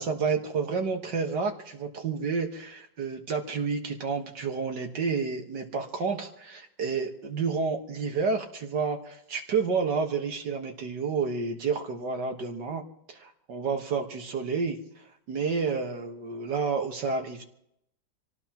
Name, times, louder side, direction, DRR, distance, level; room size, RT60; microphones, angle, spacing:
voice 1, 0.0-12.8 13.1-17.5, right 5 dB, 65° right, 3 dB, 2.1 m, -30 dB
26.0 x 17.5 x 3.0 m, 0.77 s
omnidirectional pair, 2.1 m